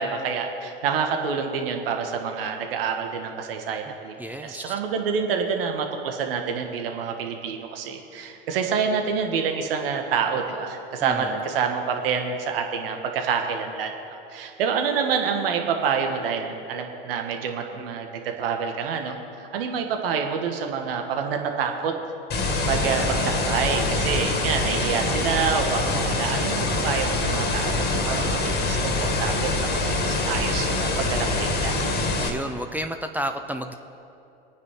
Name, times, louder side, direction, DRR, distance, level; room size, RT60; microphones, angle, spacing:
voice 1, 0.0-21.9 22.6-31.8, right 6 dB, 75° right, 4 dB, 1.7 m, -27 dB
voice 2, 4.2-4.7 11.0-11.4 32.2-33.8, right 1 dB, 5° right, 6 dB, 0.6 m, -31 dB
sound 1, 22.3-32.3, left 2 dB, 35° left, 2.1 m, -25 dB
22.5 x 9.5 x 3.8 m, 2.7 s
hypercardioid pair, 100°, 29 cm